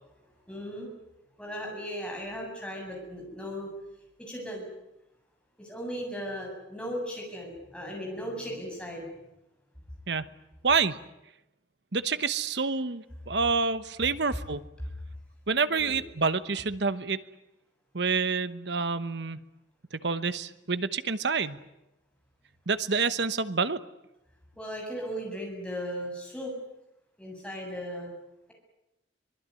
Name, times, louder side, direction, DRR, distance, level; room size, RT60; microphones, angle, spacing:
voice 1, 0.5-0.9 1.4-3.7 4.2-4.7 5.6-9.1 15.7-16.0 24.6-26.5 27.2-28.1, equal, 5° left, -1 dB, 7.8 m, -37 dB
voice 2, 10.6-11.0 11.9-14.6 15.5-17.2 17.9-19.4 19.9-21.6 22.7-23.8, right 4 dB, 65° right, 13 dB, 1.1 m, -28 dB
24.5 x 21.0 x 9.8 m, 0.94 s
head